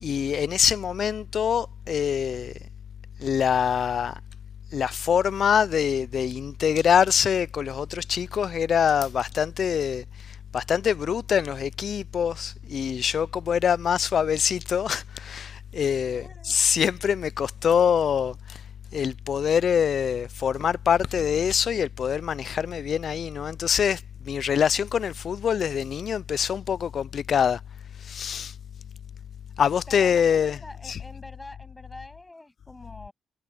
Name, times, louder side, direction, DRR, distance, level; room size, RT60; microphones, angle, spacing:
voice 1, 0.0-2.6 3.2-4.2 4.7-18.6 18.9-27.6 28.0-28.5 29.6-30.6 30.9-31.0, left 7 dB, 45° left, 0.3 m, -24 dB
voice 2, 16.1-16.6 29.9-33.1, left 2 dB, 10° left, 7.9 m, -45 dB
cardioid pair, 165°, 0 cm